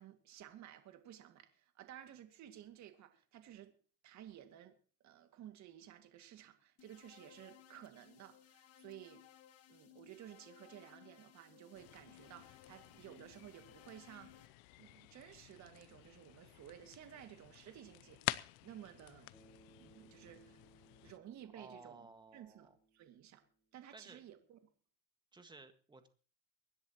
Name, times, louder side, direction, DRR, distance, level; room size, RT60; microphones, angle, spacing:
voice 1, 0.0-3.7 4.0-4.7 5.0-9.2 9.7-14.5 14.8-18.4 18.6-19.3 19.8-20.6 21.0-22.1 22.3-23.4 23.7-24.6, right 11 dB, 45° right, 2.2 m, -55 dB
sound 1, 6.8-14.5, left 11 dB, 40° left, 1.6 m, -62 dB
sound 2, 11.7-21.2, left 20 dB, 70° left, 0.8 m, -48 dB
Bass guitar, 19.3-23.7, right 3 dB, 10° left, 5.0 m, -67 dB
voice 2, 21.5-22.8 23.9-24.2 25.3-26.1, right 3 dB, 10° right, 1.7 m, -56 dB
24.5 x 10.5 x 3.0 m
supercardioid pair, 125°, 38 cm